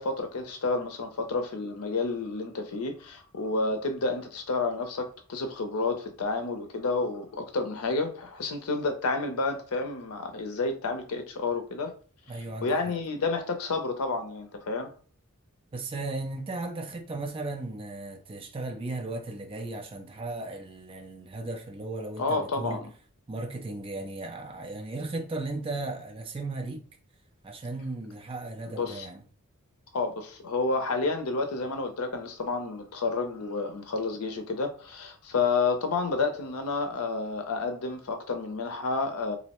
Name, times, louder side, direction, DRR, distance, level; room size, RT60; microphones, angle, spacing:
voice 1, 0.0-11.9 12.6-14.9 22.2-22.9 28.7-29.1 29.9-39.4, left 3 dB, 85° left, 0.5 m, -30 dB
voice 2, 12.3-13.0 15.7-22.8 23.3-26.9 27.4-29.2, right 2 dB, 25° right, 0.4 m, -36 dB
2.6 x 2.0 x 2.9 m
head